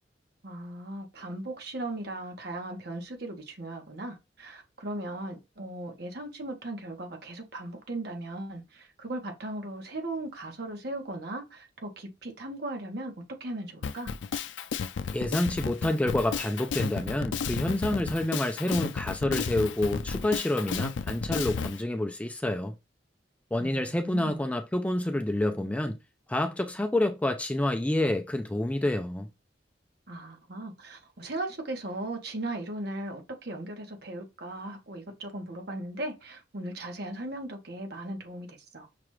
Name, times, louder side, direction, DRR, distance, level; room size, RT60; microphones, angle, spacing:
voice 1, 0.4-13.1 13.4-14.2 23.6-24.4 30.1-38.9, right 1 dB, 60° right, 1.1 m, -37 dB
Drum kit, 13.8-21.8, left 6 dB, 85° left, 0.4 m, -32 dB
voice 2, 15.1-22.7 23.5-26.0 26.3-29.3, left 1 dB, 10° left, 0.4 m, -28 dB
5.9 x 2.4 x 3.1 m
head